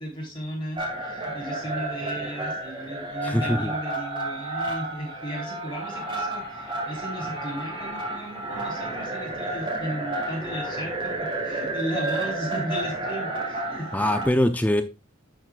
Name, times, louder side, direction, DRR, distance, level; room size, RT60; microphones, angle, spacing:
voice 1, 0.0-13.9, equal, 25° left, 3.3 m, -35 dB
sound 1, 0.8-14.3, right 2 dB, 25° right, 1.9 m, -31 dB
voice 2, 3.2-3.7 13.9-14.8, left 1 dB, 10° left, 0.4 m, -23 dB
10.5 x 6.2 x 2.4 m
head